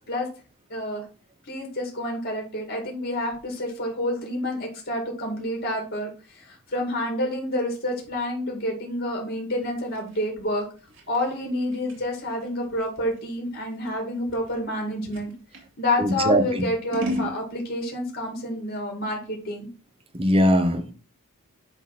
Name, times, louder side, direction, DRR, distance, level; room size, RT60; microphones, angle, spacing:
voice 1, 0.7-1.1 1.4-10.6 11.1-15.3 15.8-19.7, left 1 dB, 55° left, 2.3 m, -28 dB
Scissors, 9.5-15.7 16.2-17.4, equal, 60° right, 3.1 m, -36 dB
voice 2, 16.0-16.7 20.1-20.9, equal, 25° right, 1.1 m, -21 dB
10.0 x 3.5 x 5.9 m
head